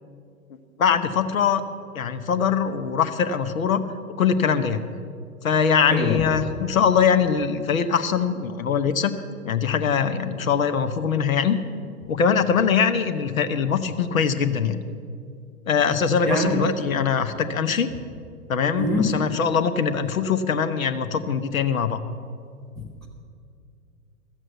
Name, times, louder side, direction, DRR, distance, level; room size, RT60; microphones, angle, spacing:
voice 1, 0.8-1.6 1.9-3.8 4.2-4.8 5.4-9.1 9.4-11.6 12.1-14.8 15.7-17.9 18.5-22.0, left 6 dB, 65° left, 11 dB, 1.0 m, -22 dB
voice 2, 16.3-16.6 18.8-19.1, left 1 dB, ahead, -3 dB, 0.4 m, -23 dB
13.5 x 7.6 x 7.9 m, 2.3 s
figure-of-eight pair, 105°, 45 cm